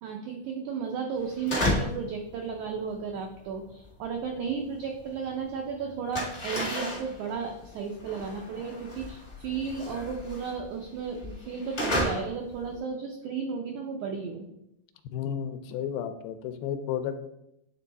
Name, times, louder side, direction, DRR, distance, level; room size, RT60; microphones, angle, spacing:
voice 1, 0.0-14.5, right 6 dB, 85° right, 2 dB, 1.7 m, -34 dB
sound 1, 1.2-2.1 2.4-5.3 5.6-12.8, left 1 dB, 50° left, 0.8 m, -33 dB
voice 2, 15.1-17.2, left 9 dB, 85° left, 9 dB, 2.3 m, -32 dB
9.1 x 3.4 x 4.1 m, 0.84 s
omnidirectional pair, 4.2 m